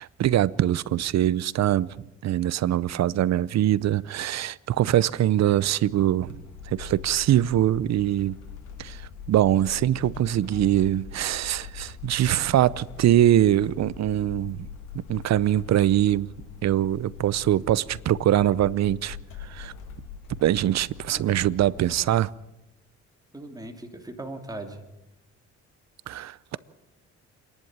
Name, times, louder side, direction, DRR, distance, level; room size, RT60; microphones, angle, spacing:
voice 1, 0.0-2.0 2.2-6.4 6.7-8.4 8.8-14.7 14.9-16.3 16.6-19.7 20.4-22.3 26.1-26.6, right 12 dB, 60° right, 0.7 m, -23 dB
sound 1, 6.3-22.0, left 7 dB, 85° left, 2.4 m, -42 dB
voice 2, 23.3-24.8, right 2 dB, 10° right, 2.8 m, -38 dB
27.5 x 11.0 x 8.9 m
cardioid pair, 90°, 30 cm